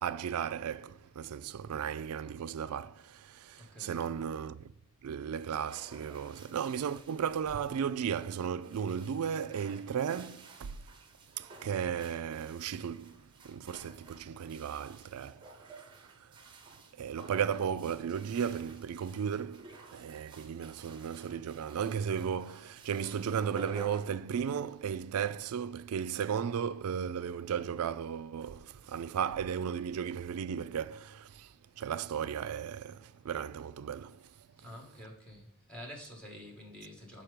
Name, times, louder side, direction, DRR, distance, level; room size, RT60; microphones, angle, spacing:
voice 1, 0.0-4.7 5.0-10.8 11.4-15.4 17.0-31.5 31.8-34.2, right 7 dB, 80° right, 0.4 m, -35 dB
voice 2, 3.6-4.2 34.6-37.2, equal, 5° left, 1.8 m, -48 dB
sound 1, 5.4-25.0, right 3 dB, 20° right, 0.9 m, -53 dB
5.9 x 5.0 x 5.0 m
head